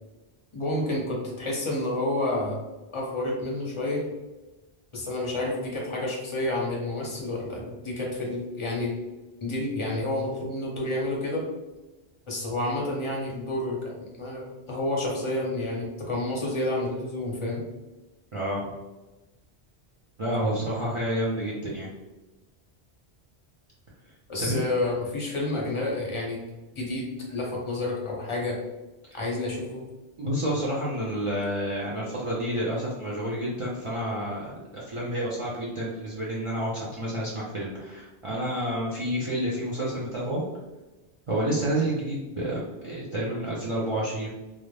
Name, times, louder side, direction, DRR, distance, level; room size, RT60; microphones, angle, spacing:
voice 1, 0.5-2.6 2.9-4.1 4.9-8.9 9.4-11.5 12.3-17.6 24.3-26.4 26.7-28.6 29.1-29.8, left 2 dB, 35° left, -2 dB, 0.5 m, -29 dB
voice 2, 18.3-18.7 20.2-21.9 24.4-24.6 30.2-40.4 41.3-44.3, right 1 dB, 50° right, -6 dB, 0.4 m, -29 dB
2.5 x 2.0 x 3.1 m, 1.1 s
omnidirectional pair, 1.1 m